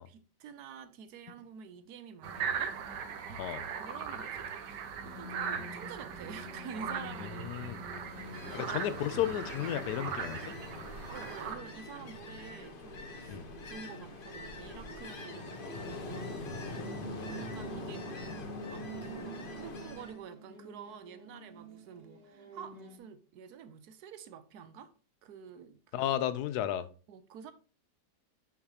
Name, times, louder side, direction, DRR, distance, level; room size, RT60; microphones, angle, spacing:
voice 1, 0.0-2.8 3.3-7.5 8.5-9.0 11.1-24.9 25.2-26.1 27.1-27.5, right 7 dB, 70° right, 1.2 m, -49 dB
sound 1, 2.2-11.6, right 6 dB, 90° right, 1.4 m, -39 dB
sound 2, 5.0-23.0, right 1 dB, 35° right, 1.7 m, -49 dB
voice 2, 7.3-7.8 8.5-10.5 13.3-13.5 25.9-26.9, left 11 dB, 75° left, 1.1 m, -33 dB
Ocean, 8.0-20.2, left 2 dB, 45° left, 0.8 m, -43 dB
6.6 x 5.8 x 2.8 m
omnidirectional pair, 1.8 m